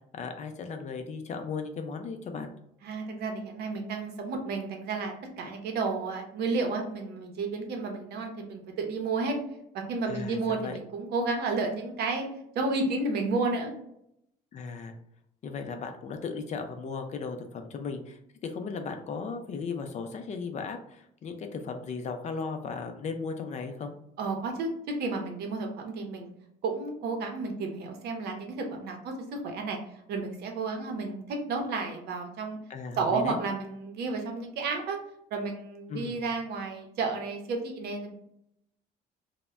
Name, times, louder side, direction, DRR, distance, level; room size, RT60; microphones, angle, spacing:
voice 1, 0.1-2.5 10.0-10.8 14.5-14.9 15.4-23.9 32.7-33.4 35.9-36.2, left 5 dB, 45° left, 6 dB, 0.4 m, -36 dB
voice 2, 2.8-9.3 9.7-12.3 12.5-13.7 24.2-26.3 26.6-29.8 30.1-32.6 32.9-35.0 35.3-38.1, right 3 dB, 75° right, 3 dB, 0.7 m, -32 dB
2.1 x 2.1 x 3.5 m, 0.75 s
cardioid pair, 110°, 17 cm